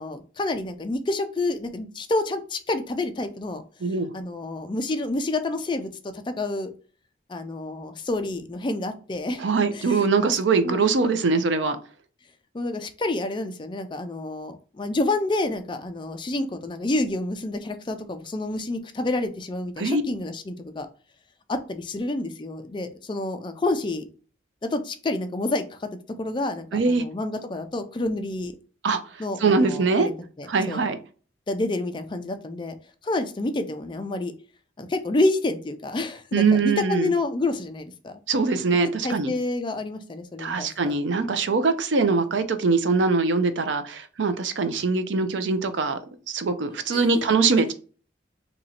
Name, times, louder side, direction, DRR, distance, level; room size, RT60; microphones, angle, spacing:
voice 1, 0.0-3.6 4.1-6.7 7.3-9.5 9.7-10.0 10.6-10.8 12.5-20.9 21.5-24.1 24.7-25.9 26.2-28.5 29.2-30.9 31.5-32.8 33.0-34.3 34.8-38.2 39.0-40.9 46.9-47.2, left 2 dB, 25° left, 7 dB, 0.4 m, -28 dB
voice 2, 9.4-11.8 19.8-20.0 26.7-27.0 28.8-29.0 29.4-30.1 30.5-31.0 36.3-37.1 38.3-39.3 40.4-46.0 46.3-47.7, right 4 dB, 80° right, 10 dB, 0.5 m, -22 dB
2.9 x 2.6 x 4.2 m, 0.38 s
head